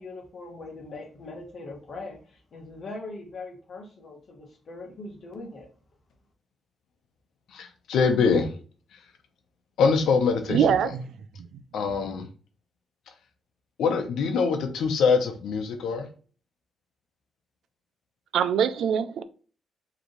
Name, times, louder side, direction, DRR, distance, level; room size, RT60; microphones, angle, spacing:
voice 1, 0.0-5.7, left 2 dB, 40° left, 1.3 m, -41 dB
voice 2, 7.5-8.5 9.8-10.9 11.7-12.3 13.8-16.0, left 5 dB, 85° left, 0.9 m, -24 dB
voice 3, 10.5-11.0 18.3-19.2, right 8 dB, 75° right, 0.4 m, -23 dB
5.1 x 3.2 x 3.1 m
wide cardioid pair, 175°, 0 cm